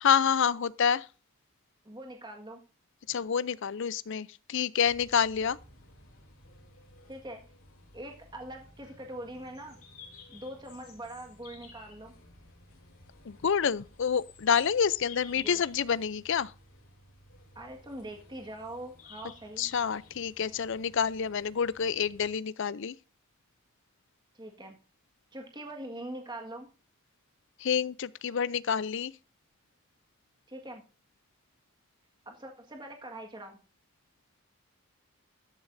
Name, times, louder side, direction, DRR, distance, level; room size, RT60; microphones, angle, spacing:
voice 1, 0.0-1.1 3.1-5.6 13.3-16.5 19.6-23.0 27.6-29.1, left 7 dB, 60° left, 0.5 m, -28 dB
voice 2, 1.8-2.6 7.1-7.4 7.9-9.8 10.3-12.1 15.4-15.6 17.5-19.7 24.3-24.8 25.3-26.7 30.5-30.8 32.2-33.6, right 1 dB, 20° right, 1.7 m, -43 dB
sound 1, 4.8-22.4, left 4 dB, 75° left, 3.0 m, -54 dB
14.0 x 10.5 x 2.6 m
head